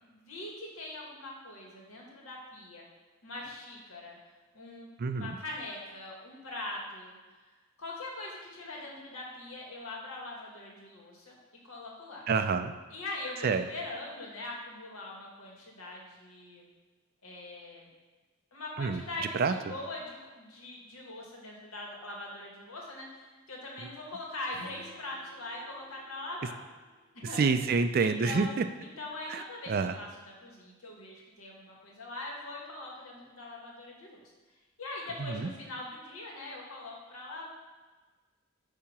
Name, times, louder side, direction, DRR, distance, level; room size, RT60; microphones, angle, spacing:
voice 1, 0.0-2.9 3.2-4.2 4.5-4.9 5.1-7.2 7.8-11.4 11.6-12.2 12.9-16.7 17.2-17.9 18.5-26.6 27.1-27.4 28.0-28.5 28.8-30.1 30.4-34.2 34.8-37.4, left 2 dB, 85° left, -2 dB, 1.7 m, -42 dB
voice 2, 5.0-5.4 12.3-12.7 13.4-13.7 18.8-19.0 19.3-19.5 27.4-28.6 29.3-30.0 35.2-35.5, right 4 dB, 45° right, 9 dB, 0.3 m, -28 dB
Strum, 24.5-29.7, left 1 dB, 20° right, 2.1 m, -57 dB
8.5 x 2.8 x 5.8 m, 1.3 s
head